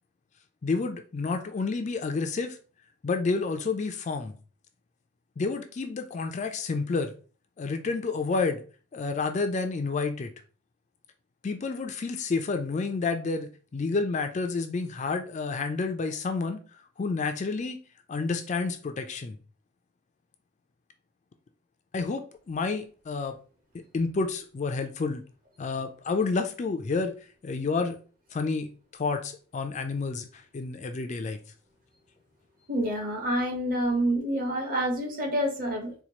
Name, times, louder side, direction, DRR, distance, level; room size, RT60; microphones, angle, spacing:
voice 1, 0.6-2.6 3.0-4.3 5.4-7.1 7.6-8.6 8.9-10.3 11.4-16.6 17.0-17.8 18.1-19.4 21.9-23.4 23.7-25.2 25.6-27.2 27.4-28.0 28.3-31.4, left 4 dB, 35° left, 0.3 m, -30 dB
voice 2, 32.7-35.9, right 1 dB, 45° right, 1.0 m, -27 dB
4.4 x 2.3 x 2.8 m
head